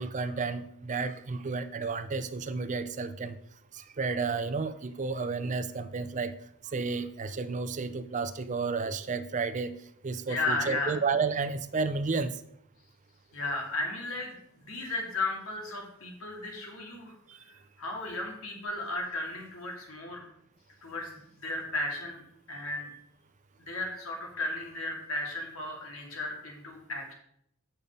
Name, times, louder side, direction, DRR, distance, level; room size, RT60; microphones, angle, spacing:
voice 1, 0.0-3.4 3.7-6.4 6.6-9.8 10.0-12.4 17.3-17.4, right 4 dB, 35° right, 11 dB, 0.5 m, -32 dB
voice 2, 10.3-11.0 13.3-17.1 17.8-20.2 20.8-22.2 22.5-22.9 23.7-27.1, left 2 dB, 70° left, 0 dB, 2.4 m, -35 dB
8.6 x 5.4 x 5.3 m, 0.72 s
head